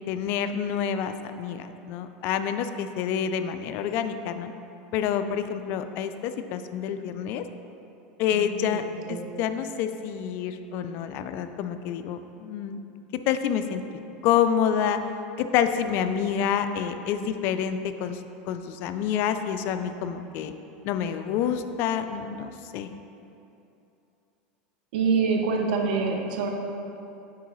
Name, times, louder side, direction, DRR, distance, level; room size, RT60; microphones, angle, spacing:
voice 1, 0.0-4.5 4.9-7.4 8.2-12.8 13.3-13.8 14.2-15.0 15.4-18.2 18.5-20.5 20.8-22.9, left 8 dB, 55° left, 9 dB, 0.3 m, -28 dB
voice 2, 8.3-8.8 9.1-9.2 24.9-26.5, right 5 dB, 75° right, 2 dB, 0.7 m, -26 dB
8.2 x 4.6 x 3.1 m, 2.8 s
supercardioid pair, 130°, 5 cm